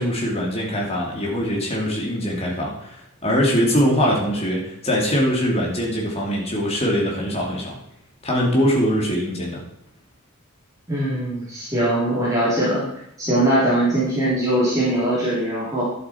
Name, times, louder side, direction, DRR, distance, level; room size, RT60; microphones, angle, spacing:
voice 1, 0.0-7.7 8.2-9.6, equal, 30° left, -2 dB, 2.8 m, -22 dB
voice 2, 10.9-12.9 13.2-15.8, right 1 dB, 15° right, -9 dB, 3.5 m, -21 dB
11.0 x 7.8 x 4.5 m, 0.77 s
head